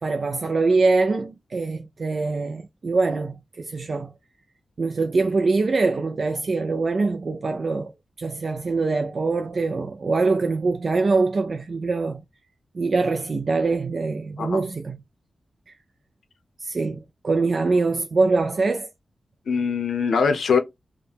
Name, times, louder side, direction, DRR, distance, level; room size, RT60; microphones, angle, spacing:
voice 1, 0.0-4.1 4.8-7.9 8.2-12.2 12.7-15.0 15.7-15.8 16.6-18.9, right 3 dB, 45° right, 0.3 m, -23 dB
voice 2, 19.5-20.6, left 5 dB, 85° left, 0.7 m, -22 dB
4.8 x 2.2 x 3.3 m
wide cardioid pair, 145°, 0 cm